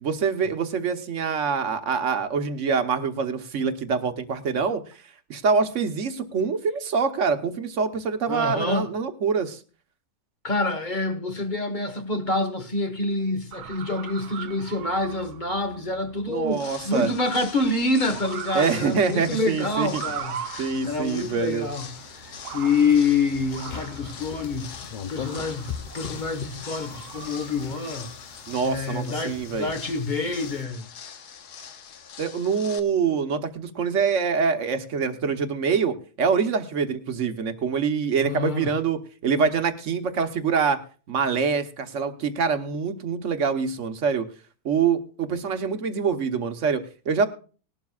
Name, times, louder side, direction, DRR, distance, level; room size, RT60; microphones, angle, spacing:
voice 1, 0.0-4.8 5.3-9.6 16.3-17.1 18.5-20.0 20.6-21.7 25.4-25.5 28.5-29.7 32.2-40.8 41.1-44.3 44.6-47.3, right 5 dB, 55° right, 1.2 m, -25 dB
voice 2, 8.3-8.9 10.4-28.3 28.6-30.8 38.2-38.7, left 3 dB, 35° left, 1.3 m, -27 dB
Motor vehicle (road) / Siren, 13.5-29.1, right 9 dB, 75° right, 1.3 m, -41 dB
sound 1, 16.5-32.8, left 7 dB, 85° left, 1.6 m, -43 dB
sound 2, 21.0-30.6, left 8 dB, 60° left, 0.4 m, -41 dB
19.5 x 12.0 x 2.4 m
omnidirectional pair, 1.6 m